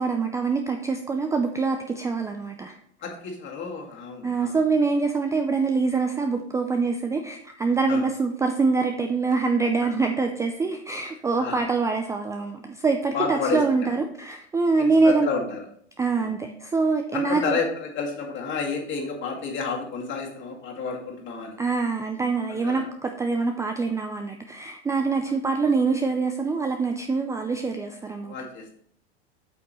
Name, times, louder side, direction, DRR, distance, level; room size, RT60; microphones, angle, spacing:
voice 1, 0.0-2.8 4.2-15.3 16.0-17.6 21.6-28.3, right 4 dB, 10° right, 5 dB, 0.4 m, -24 dB
voice 2, 3.0-4.6 7.9-8.1 11.4-11.6 13.1-13.9 14.8-15.7 16.1-16.3 17.1-21.6 22.5-22.8 28.2-28.8, left 5 dB, 35° left, 0 dB, 2.1 m, -30 dB
8.6 x 5.9 x 3.1 m, 0.65 s
hypercardioid pair, 100°, 33 cm